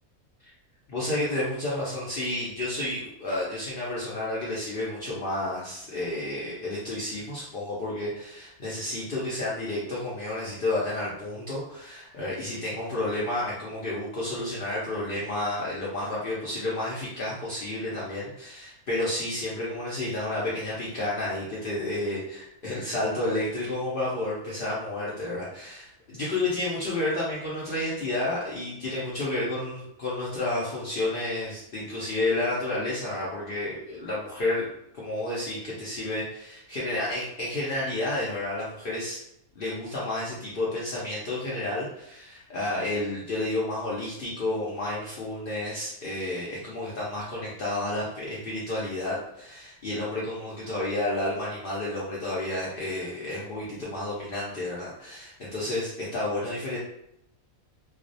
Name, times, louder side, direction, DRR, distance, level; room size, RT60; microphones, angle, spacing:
voice 1, 0.9-34.7 34.9-39.2 39.6-56.8, left 2 dB, 70° left, -7 dB, 0.5 m, -31 dB
2.4 x 2.0 x 2.6 m, 0.77 s
omnidirectional pair, 1.5 m